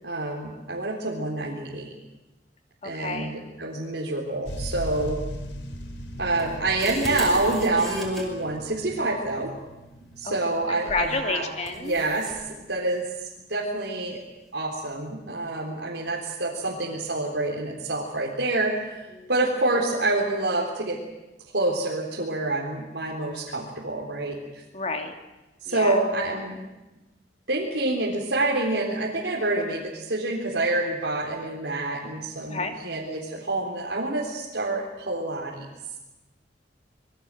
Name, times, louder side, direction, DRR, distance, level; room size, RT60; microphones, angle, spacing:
voice 1, 0.0-1.9 2.8-5.2 6.2-9.5 10.2-11.4 11.8-13.0 13.5-14.2 14.5-19.0 19.3-21.0 21.5-24.4 25.6-26.6 27.5-35.6, right 2 dB, 80° right, -3 dB, 4.1 m, -27 dB
voice 2, 2.8-3.3 10.2-10.3 10.7-11.9 19.1-19.3 24.7-25.1 25.7-26.0 32.4-32.7, left 3 dB, 35° left, 5 dB, 2.8 m, -30 dB
sound 1, 4.5-12.0 12.7-12.8, equal, 85° left, 3.7 m, -39 dB
sound 2, 6.4-8.2 10.9-11.1 11.7-12.4, right 1 dB, ahead, 5.6 m, -36 dB
26.5 x 22.5 x 7.7 m, 1.0 s
head